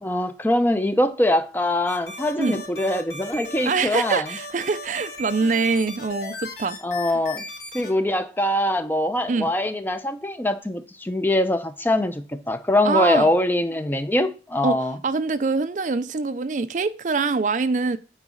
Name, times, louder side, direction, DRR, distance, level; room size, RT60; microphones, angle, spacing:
voice 1, 0.0-4.3 6.8-7.4 7.7-15.0, left 1 dB, 10° left, 0.6 m, -23 dB
sound 1, 1.9-7.9, left 2 dB, 60° left, 3.1 m, -36 dB
voice 2, 3.7-6.8 9.3-9.5 12.8-13.3 14.6-14.8 15.0-18.0, right 4 dB, 45° right, 0.4 m, -24 dB
9.1 x 4.0 x 6.2 m
head